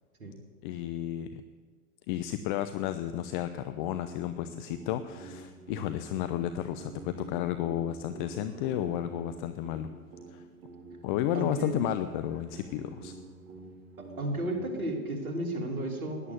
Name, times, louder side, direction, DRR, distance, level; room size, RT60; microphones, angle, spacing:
voice 1, 0.6-1.4 2.1-9.9 10.3-10.4 11.0-13.1, left 11 dB, 35° left, 10 dB, 0.7 m, -32 dB
sound 1, 3.8-14.7, right 3 dB, 40° right, 2.4 m, -48 dB
voice 2, 11.3-11.8 14.0-16.3, right 1 dB, 70° right, 1 dB, 3.2 m, -33 dB
17.0 x 11.0 x 7.2 m, 1.5 s
figure-of-eight pair, 95°, 44 cm